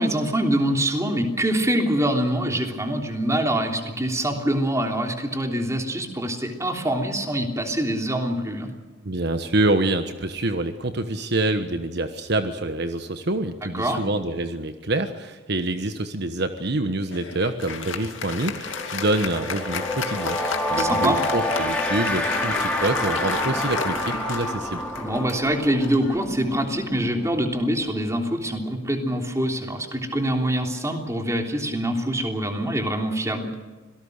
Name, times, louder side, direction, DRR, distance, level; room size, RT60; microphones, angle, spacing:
voice 1, 0.0-8.7 13.6-14.0 20.7-21.2 25.0-33.5, right 1 dB, 15° right, 3 dB, 3.3 m, -25 dB
voice 2, 9.0-24.8, right 2 dB, 60° right, 8 dB, 1.3 m, -26 dB
Applause, 17.1-26.9, left 5 dB, 85° left, 2.4 m, -33 dB
sound 1, 17.5-17.6 17.9-28.4, left 1 dB, 5° left, 3.0 m, -29 dB
26.0 x 18.5 x 6.7 m, 1.3 s
head